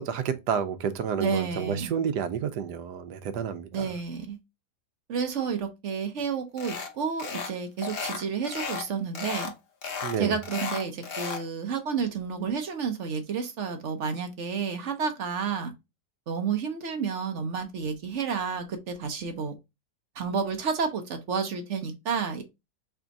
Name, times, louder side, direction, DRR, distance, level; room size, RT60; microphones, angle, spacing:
voice 1, 0.0-3.9 10.0-10.4, right 7 dB, 80° right, 1.2 m, -30 dB
voice 2, 1.2-1.9 3.7-4.4 5.1-9.5 10.2-15.7 16.3-19.5 20.2-22.4, right 6 dB, 55° right, 0.9 m, -30 dB
sound 1, 6.6-6.9 7.2-7.5 7.8-8.9 9.1-9.5 9.8-11.4, left 5 dB, 45° left, 0.9 m, -34 dB
3.5 x 3.4 x 3.9 m
omnidirectional pair, 1.7 m